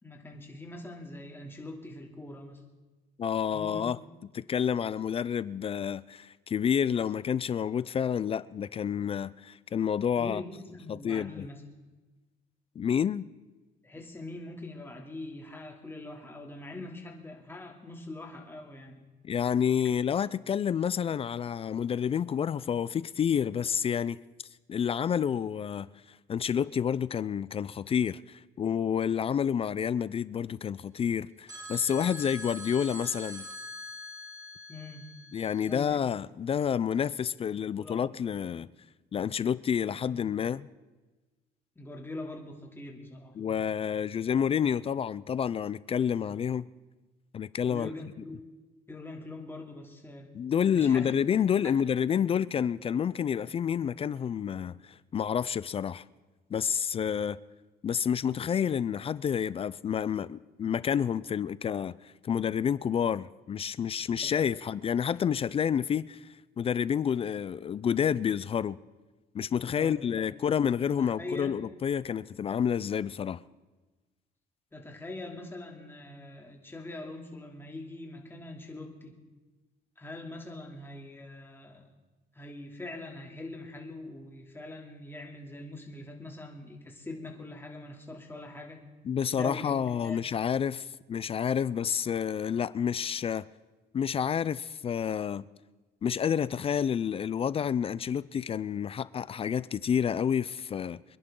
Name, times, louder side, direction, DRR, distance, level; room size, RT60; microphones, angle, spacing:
voice 1, 0.0-2.6 3.5-3.9 10.2-11.6 13.8-19.0 34.7-35.1 35.6-36.0 37.8-38.4 41.8-43.4 47.7-48.4 48.9-50.3 50.7-51.1 51.6-51.7 69.7-70.3 71.0-71.6 74.7-79.2 80.0-81.9 82.3-88.8 89.3-89.7 90.0-90.3, left 2 dB, 15° left, 2.9 m, -43 dB
voice 2, 3.2-4.0 4.3-10.4 10.9-11.5 12.8-13.3 19.2-24.2 24.7-25.9 26.3-33.5 35.3-38.7 39.1-40.7 43.4-46.6 47.3-47.9 50.3-54.8 55.1-56.0 56.5-57.4 57.8-66.3 66.6-68.8 69.3-73.4 89.1-93.5 93.9-95.5 96.0-101.0, left 8 dB, 35° left, 0.4 m, -29 dB
sound 1, 31.5-35.8, left 1 dB, 20° right, 2.4 m, -43 dB
26.0 x 11.0 x 3.8 m
cardioid pair, 110°, 17 cm